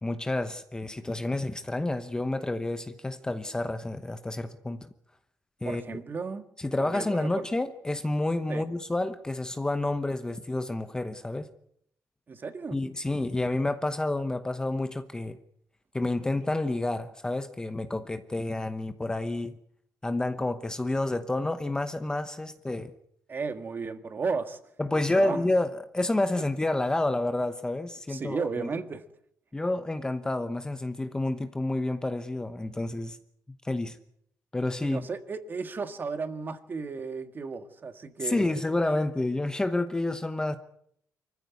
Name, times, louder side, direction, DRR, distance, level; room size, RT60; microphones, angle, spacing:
voice 1, 0.0-4.9 5.6-6.0 6.6-11.5 12.7-15.4 15.9-19.6 20.0-22.9 24.8-28.7 29.5-33.2 33.6-34.0 34.5-35.0 38.2-40.6, left 2 dB, 10° left, 1.0 m, -29 dB
voice 2, 5.6-6.4 6.9-7.5 8.5-8.6 12.3-12.8 23.3-24.6 24.9-25.4 26.4-26.5 28.1-29.0 34.8-38.7, right 4 dB, 30° right, 1.8 m, -34 dB
25.0 x 15.0 x 9.5 m
cardioid pair, 150°, 6 cm